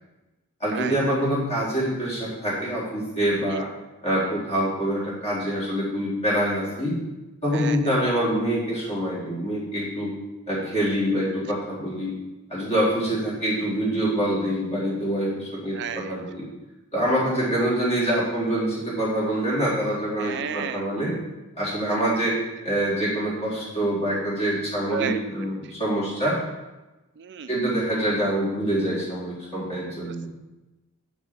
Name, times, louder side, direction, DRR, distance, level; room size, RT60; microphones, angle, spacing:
voice 1, 0.6-3.7 4.0-7.0 7.4-10.1 10.5-12.1 12.5-16.4 16.9-21.1 21.5-22.3 22.6-26.4 27.5-30.3, right 1 dB, 30° left, -7 dB, 4.0 m, -25 dB
voice 2, 15.7-16.2 20.2-20.9 24.9-25.2 25.6-25.7 27.2-27.5 30.1-30.3, right 8 dB, 50° right, 10 dB, 0.4 m, -32 dB
7.0 x 6.3 x 7.5 m, 1.1 s
head